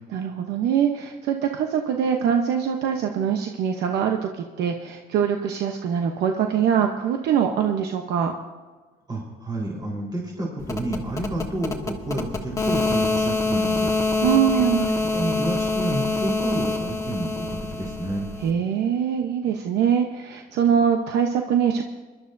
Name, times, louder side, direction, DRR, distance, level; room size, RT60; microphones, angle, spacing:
voice 1, 0.1-8.3 14.2-14.9 18.4-21.8, right 8 dB, 80° right, 4 dB, 0.9 m, -23 dB
voice 2, 9.1-13.9 15.1-18.3, right 1 dB, 25° right, -3 dB, 4.0 m, -29 dB
sound 1, 10.6-18.5, left 3 dB, 20° left, 1.4 m, -26 dB
23.0 x 12.0 x 2.7 m, 1.3 s
cardioid pair, 110°, 17 cm